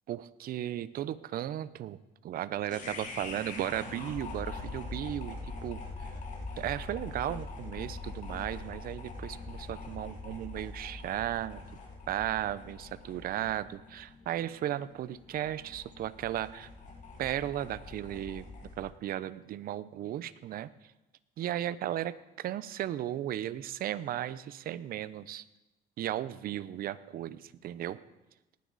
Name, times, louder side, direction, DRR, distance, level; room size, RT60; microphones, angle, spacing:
voice 1, 0.1-2.0 2.2-5.4 5.6-5.8 6.6-11.6 12.1-16.7 17.2-18.4 18.8-20.7 21.4-25.4 26.0-28.0, right 12 dB, 60° right, 16 dB, 0.6 m, -35 dB
sound 1, 2.7-18.9, left 3 dB, 45° left, 2.2 m, -43 dB
19.0 x 9.5 x 4.0 m, 0.99 s
cardioid pair, 110°, 17 cm